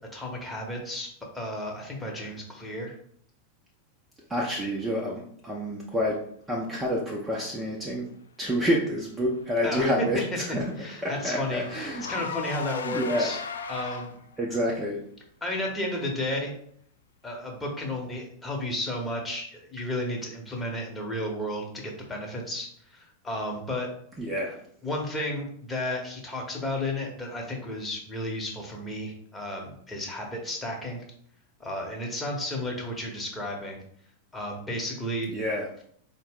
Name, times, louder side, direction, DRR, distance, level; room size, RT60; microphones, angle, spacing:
voice 1, 0.1-1.1 1.3-2.9 9.6-9.9 10.8-13.4 13.7-14.1 15.4-16.5 17.2-23.9 24.8-31.0 31.6-33.8 34.3-35.3, left 1 dB, 10° left, 0 dB, 1.0 m, -33 dB
voice 2, 2.0-2.3 4.3-6.2 6.5-8.1 8.4-12.2 12.8-13.3 14.4-15.0 24.1-24.5 35.3-35.7, equal, 10° right, -2 dB, 0.6 m, -28 dB
Car / Engine, 9.4-14.4, left 6 dB, 70° left, 0.3 m, -38 dB
4.5 x 2.1 x 3.5 m, 0.64 s
figure-of-eight pair, 90°, 0 cm